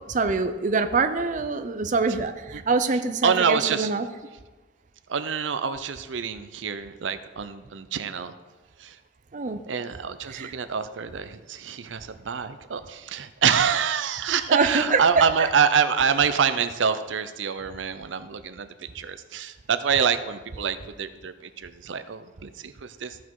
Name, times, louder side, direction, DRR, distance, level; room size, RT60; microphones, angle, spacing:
voice 1, 0.1-4.1 9.3-9.6 10.3-10.5 14.5-15.5, right 4 dB, 45° right, 8 dB, 0.5 m, -25 dB
voice 2, 3.2-3.9 5.1-8.3 8.8-9.0 9.7-23.2, right 6 dB, 90° right, 11 dB, 0.6 m, -26 dB
14.0 x 6.0 x 4.7 m, 1.2 s
head